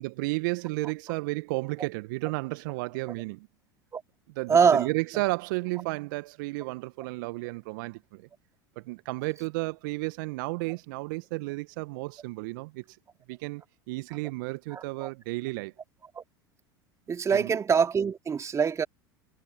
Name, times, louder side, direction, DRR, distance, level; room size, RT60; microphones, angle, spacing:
voice 1, 0.0-3.5 4.3-8.3 8.7-13.0 13.3-15.7 17.3-17.5, right 24 dB, 60° right, 1.6 m, -33 dB
voice 2, 4.5-4.9 14.7-15.1 16.2-16.3 17.1-18.9, right 6 dB, 25° right, 2.4 m, -24 dB
figure-of-eight pair, 75°, 12 cm